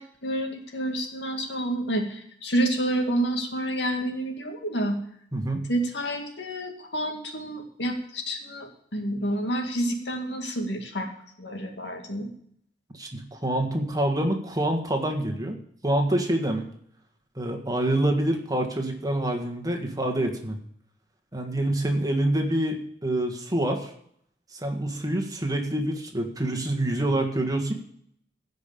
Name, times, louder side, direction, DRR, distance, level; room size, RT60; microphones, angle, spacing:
voice 1, 0.0-5.0 5.7-11.1 11.4-12.3, right 1 dB, 80° left, 3 dB, 2.1 m, -29 dB
voice 2, 5.3-5.6 12.9-15.6 15.8-16.7 17.3-20.6 21.3-23.9 24.5-27.7, right 1 dB, 20° right, 3 dB, 1.7 m, -26 dB
16.0 x 5.4 x 6.9 m, 0.66 s
head